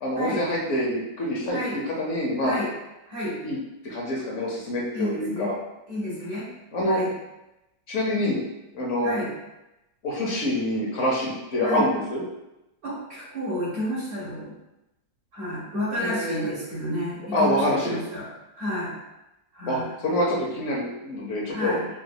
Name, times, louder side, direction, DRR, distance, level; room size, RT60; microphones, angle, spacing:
voice 1, 0.0-1.6 2.0-2.6 3.4-3.6 3.8-5.5 6.0-6.1 6.7-7.0 7.9-8.4 8.7-9.1 10.0-12.2 16.0-16.5 17.3-18.0 19.7-21.8, left 1 dB, 55° left, -3 dB, 0.9 m, -26 dB
voice 2, 3.0-3.4 4.9-5.5 5.9-6.5 6.8-7.1 9.0-9.3 11.6-11.9 12.8-14.5 15.3-18.3 18.6-19.0 19.5-19.9 21.5-21.9, equal, 60° right, -8 dB, 1.5 m, -31 dB
4.8 x 3.1 x 2.2 m, 0.95 s
omnidirectional pair, 1.9 m